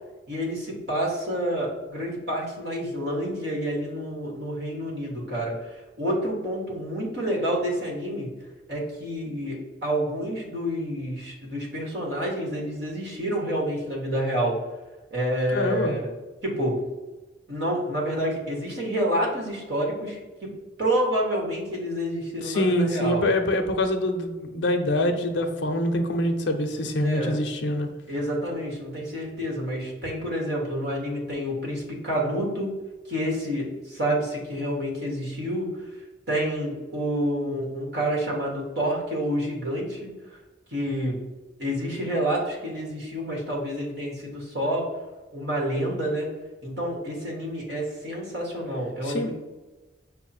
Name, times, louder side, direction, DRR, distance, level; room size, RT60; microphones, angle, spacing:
voice 1, 0.3-8.3 8.7-14.6 15.1-16.1 16.4-16.8 17.5-20.2 20.8-23.3 26.7-27.4 28.1-32.7 33.1-35.8 36.3-40.4 40.7-41.2 41.6-44.8 45.3-46.3 46.6-49.3, equal, 60° right, -2 dB, 1.4 m, -28 dB
voice 2, 15.5-16.0 22.4-27.9 49.0-49.3, left 1 dB, 70° left, 5 dB, 0.6 m, -25 dB
5.4 x 2.1 x 4.2 m, 1.2 s
head